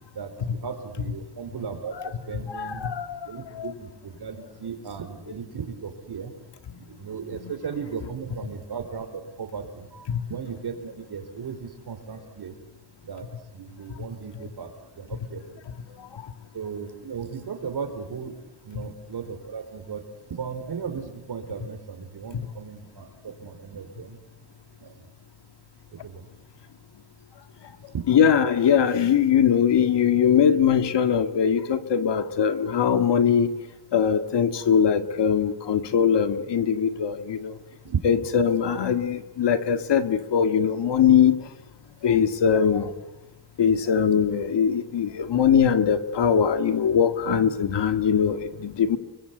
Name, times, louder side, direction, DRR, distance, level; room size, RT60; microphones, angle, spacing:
voice 1, 0.2-1.9 2.3-2.8 3.3-6.3 7.0-9.1 9.4-12.5 13.1-13.2 13.5-14.7 15.0-15.4 16.5-18.3 18.7-20.0 20.3-23.1 23.4-24.2 24.8-24.9 26.0-26.2 27.9-28.1 37.8-38.0, right 6 dB, 60° right, 8 dB, 4.4 m, -35 dB
voice 2, 2.4-3.2 3.5-3.7 7.3-7.6 10.1-10.2 16.1-16.2 28.1-33.5 33.9-37.5 38.0-41.4 42.0-42.9 43.6-49.0, left 7 dB, 75° left, 8 dB, 2.1 m, -21 dB
30.0 x 23.5 x 8.3 m, 0.96 s
wide cardioid pair, 160°, 43 cm